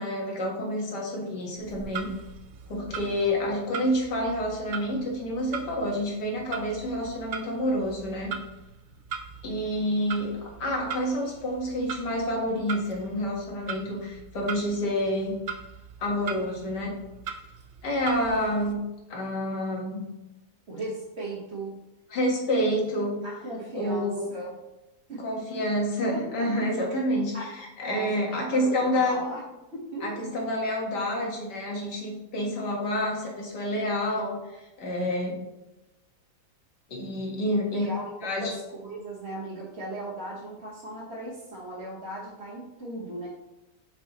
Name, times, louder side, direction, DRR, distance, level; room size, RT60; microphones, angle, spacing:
voice 1, 0.0-2.1 2.7-8.4 9.4-15.4 16.0-17.0 17.8-18.8 19.1-20.1 22.1-23.2 23.7-24.3 25.2-29.3 30.0-35.4 36.9-37.9 38.2-38.5, equal, 80° left, -1 dB, 2.2 m, -28 dB
Clock, 1.6-18.7, right 6 dB, 60° right, 0.7 m, -41 dB
voice 2, 20.7-21.7 23.2-24.6 25.1-25.2 26.1-26.5 27.3-27.5 27.8-29.4 29.7-30.1 37.7-43.3, right 1 dB, 40° right, -7 dB, 1.7 m, -37 dB
8.9 x 5.4 x 3.0 m, 0.98 s
omnidirectional pair, 1.8 m